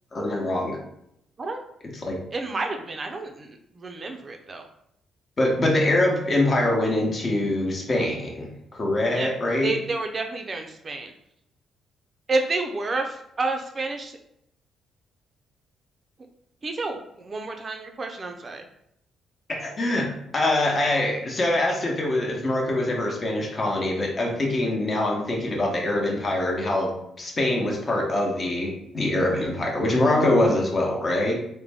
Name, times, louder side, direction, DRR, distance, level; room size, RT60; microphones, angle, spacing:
voice 1, 0.1-0.8 2.0-2.2 5.4-9.7 19.5-20.1 20.3-31.3, left 1 dB, 35° left, 0 dB, 1.0 m, -24 dB
voice 2, 2.3-4.7 9.1-9.3 9.6-11.1 12.3-14.2 16.6-18.6, right 3 dB, 35° right, 4 dB, 0.5 m, -30 dB
3.7 x 2.1 x 3.4 m, 0.76 s
cardioid pair, 90°, 0 cm